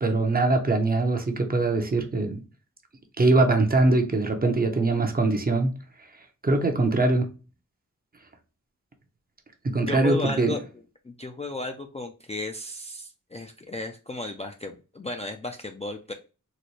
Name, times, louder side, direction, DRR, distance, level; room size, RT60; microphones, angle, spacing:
voice 1, 0.0-2.4 3.2-5.7 6.4-7.3 9.6-10.5, right 2 dB, 30° right, 0.6 m, -22 dB
voice 2, 9.8-10.6 11.0-16.1, left 2 dB, 20° left, 0.3 m, -34 dB
4.0 x 2.1 x 3.0 m
wide cardioid pair, 125°, 32 cm